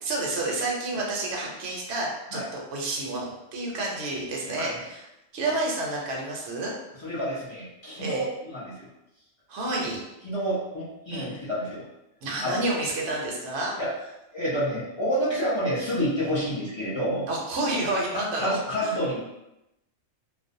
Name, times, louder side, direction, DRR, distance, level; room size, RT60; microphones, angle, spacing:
voice 1, 0.0-5.0 5.3-6.7 8.0-8.2 9.5-10.0 11.1-11.4 12.2-13.8 17.3-18.9, right 2 dB, 65° right, -2 dB, 0.8 m, -30 dB
voice 2, 7.0-8.3 8.5-8.9 10.2-11.9 12.4-12.6 13.8-13.9 14.3-17.3 18.3-19.2, equal, 40° left, -9 dB, 0.4 m, -28 dB
2.4 x 2.0 x 2.6 m, 0.89 s
omnidirectional pair, 1.3 m